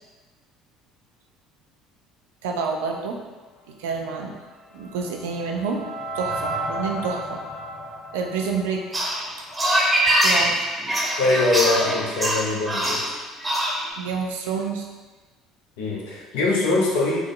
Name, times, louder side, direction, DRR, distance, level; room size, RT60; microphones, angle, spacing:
voice 1, 2.4-3.2 3.8-4.4 4.7-5.8 6.1-7.4 8.1-8.8 10.2-10.6 14.0-14.9, right 5 dB, 80° right, 1 dB, 0.4 m, -28 dB
sound 1, 4.3-9.5, right 1 dB, 15° left, 0.8 m, -33 dB
sound 2, 8.9-13.9, right 1 dB, 15° right, 0.8 m, -23 dB
voice 2, 11.2-13.0 15.8-17.2, left 3 dB, 80° left, -3 dB, 0.7 m, -22 dB
3.4 x 2.0 x 3.7 m, 1.2 s
hypercardioid pair, 65°, 0 cm